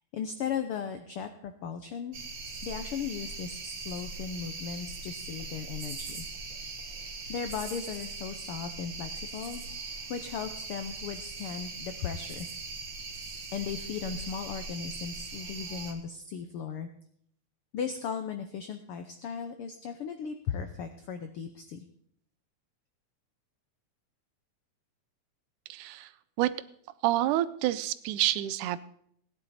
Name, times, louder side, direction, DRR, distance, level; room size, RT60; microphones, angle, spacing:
voice 1, 0.1-2.2 2.6-6.3 7.3-9.6 9.9-12.5 13.5-16.9 17.7-21.9, left 7 dB, 85° left, 8 dB, 1.2 m, -37 dB
sound 1, 2.1-15.9, right 3 dB, 45° right, 1.8 m, -40 dB
voice 2, 25.7-26.1 26.4-26.5 27.0-28.8, right 14 dB, 90° right, 15 dB, 2.1 m, -28 dB
17.0 x 10.0 x 4.1 m, 0.67 s
omnidirectional pair, 3.5 m